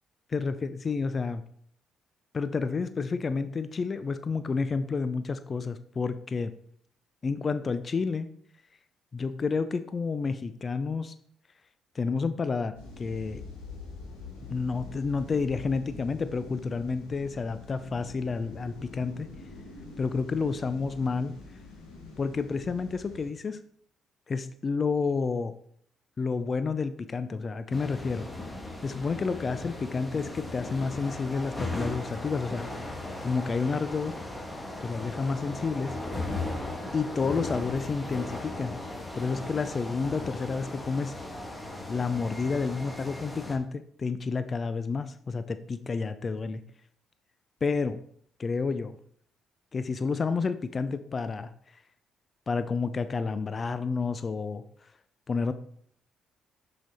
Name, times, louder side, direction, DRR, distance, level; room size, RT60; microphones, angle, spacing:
voice 1, 0.3-1.4 2.3-6.5 7.2-8.3 9.1-11.1 11.9-13.4 14.5-19.3 20.0-21.4 22.2-23.6 24.3-25.5 26.2-28.3 28.8-34.1 34.8-36.3 36.9-38.8 39.1-41.2 41.9-46.6 47.6-48.0 48.4-49.0 49.7-51.8 52.5-54.9 55.3-55.5, left 4 dB, 40° left, 12 dB, 0.4 m, -30 dB
sound 1, 12.7-23.3, left 3 dB, 90° left, 1.6 m, -45 dB
sound 2, 27.7-43.6, left 2 dB, 20° left, 1.5 m, -37 dB
6.0 x 5.1 x 4.1 m, 0.63 s
hypercardioid pair, 50°, 0 cm